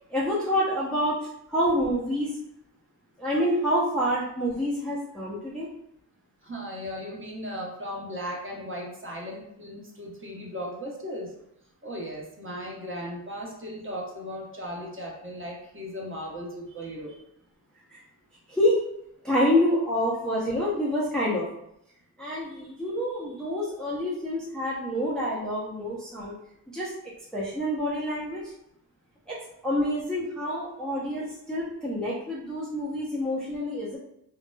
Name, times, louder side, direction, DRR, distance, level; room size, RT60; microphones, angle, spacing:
voice 1, 0.1-1.1 1.5-2.3 3.2-5.7 17.9-18.0 18.5-18.8 19.2-21.5 22.2-26.3 26.7-26.9 27.3-28.4 29.3-29.4 29.6-34.0, equal, ahead, -7 dB, 0.7 m, -27 dB
voice 2, 6.4-11.3 11.8-17.1, equal, 30° right, -3 dB, 1.0 m, -37 dB
2.9 x 2.0 x 2.3 m, 0.79 s
supercardioid pair, 45°, 44 cm